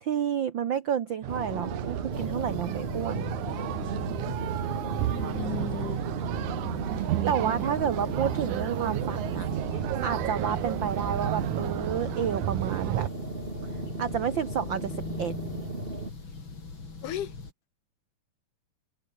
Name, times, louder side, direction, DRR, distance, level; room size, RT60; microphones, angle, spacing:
voice 1, 0.0-3.3 6.9-9.5 10.0-13.1 14.0-15.3, right 8 dB, 60° right, 1.3 m, -30 dB
sound 1, 1.2-13.1, right 15 dB, 80° right, 2.3 m, -32 dB
sound 2, 1.3-16.1, right 2 dB, 20° right, 3.1 m, -37 dB
sound 3, 2.1-17.5, left 4 dB, 40° left, 4.7 m, -41 dB
voice 2, 5.0-6.1 17.0-17.3, left 10 dB, 85° left, 3.2 m, -35 dB
omnidirectional pair, 3.5 m